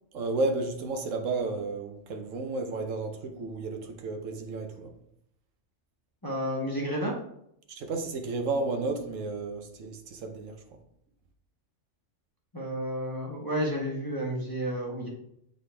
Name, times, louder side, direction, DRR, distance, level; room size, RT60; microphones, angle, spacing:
voice 1, 0.1-4.9 7.7-10.5, right 3 dB, 80° right, 4 dB, 1.2 m, -32 dB
voice 2, 6.2-7.1 12.5-15.1, equal, 20° left, -3 dB, 0.9 m, -31 dB
7.7 x 3.9 x 3.3 m, 0.75 s
omnidirectional pair, 1.3 m